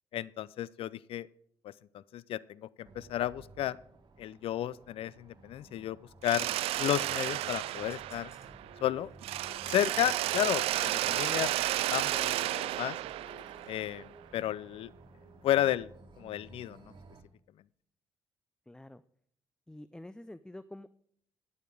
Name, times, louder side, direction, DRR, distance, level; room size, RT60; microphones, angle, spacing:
voice 1, 0.1-1.3 1.6-3.8 4.2-6.0 6.2-6.5 6.8-8.3 8.8-9.1 9.7-13.0 13.7-14.9 15.4-15.9 16.2-16.9, left 12 dB, 65° left, 21 dB, 0.5 m, -33 dB
sound 1, 2.8-17.2, right 3 dB, 50° right, 1.9 m, -54 dB
Mechanisms, 6.2-8.8 9.2-14.1, right 15 dB, 70° right, 0.4 m, -32 dB
sound 2, 6.3-13.8, left 2 dB, 25° left, 4.3 m, -60 dB
voice 2, 18.7-19.0 19.7-20.9, left 1 dB, 5° left, 15 dB, 0.5 m, -47 dB
10.5 x 9.1 x 4.9 m, 0.65 s
supercardioid pair, 55°, 10 cm